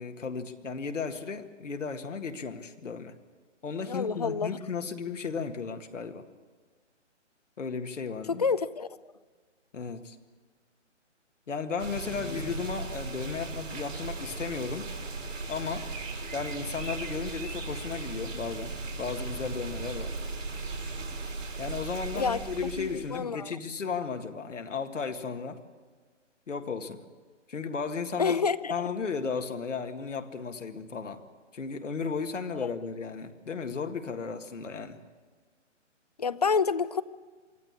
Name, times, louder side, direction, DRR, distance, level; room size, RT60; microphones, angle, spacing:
voice 1, 0.0-3.1 3.6-6.2 7.6-8.5 9.7-10.2 11.5-14.9 15.5-15.9 16.3-20.2 21.6-25.6 26.5-27.0 27.5-28.4 28.7-31.2 31.5-35.0, left 5 dB, 75° left, 6 dB, 1.9 m, -35 dB
voice 2, 3.9-4.6 8.3-8.9 12.3-12.4 22.1-22.4 22.8-23.6 28.2-28.7 32.6-32.7 36.2-37.0, left 5 dB, 35° left, 18 dB, 0.5 m, -28 dB
sound 1, 11.8-23.2, right 3 dB, 85° right, 4.3 m, -37 dB
24.5 x 14.0 x 8.6 m, 1.5 s
hypercardioid pair, 160°, 37 cm